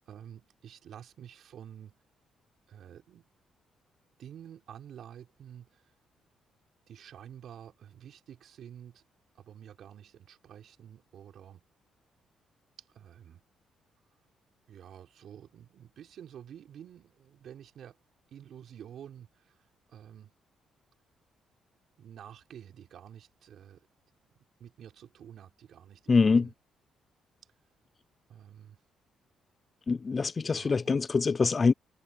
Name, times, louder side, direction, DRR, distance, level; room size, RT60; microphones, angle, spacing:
voice 1, 0.0-2.0 2.7-3.3 4.2-5.8 6.9-9.0 9.3-11.6 12.9-13.4 14.7-18.0 18.3-20.4 22.0-23.9 24.6-26.5 28.3-28.8 30.4-31.0, right 9 dB, 65° right, 5.0 m, -50 dB
voice 2, 26.1-26.4 29.9-31.7, left 4 dB, 35° left, 0.3 m, -24 dB
cardioid pair, 90°, 0 cm